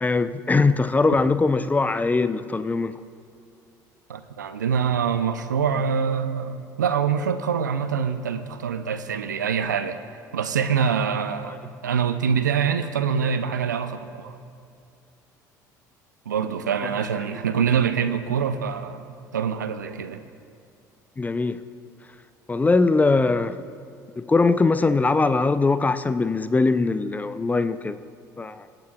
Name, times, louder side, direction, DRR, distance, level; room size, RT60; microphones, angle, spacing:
voice 1, 0.0-3.0 11.4-11.6 16.8-16.9 21.2-21.6 22.5-23.6 24.2-28.0 28.4-28.7, left 3 dB, 15° left, 12 dB, 0.5 m, -21 dB
voice 2, 4.1-10.0 10.3-11.6 11.8-14.3 16.3-19.0 19.3-20.2, right 7 dB, 85° right, 10 dB, 0.5 m, -25 dB
24.5 x 9.0 x 2.4 m, 2.4 s
hypercardioid pair, 60°, 10 cm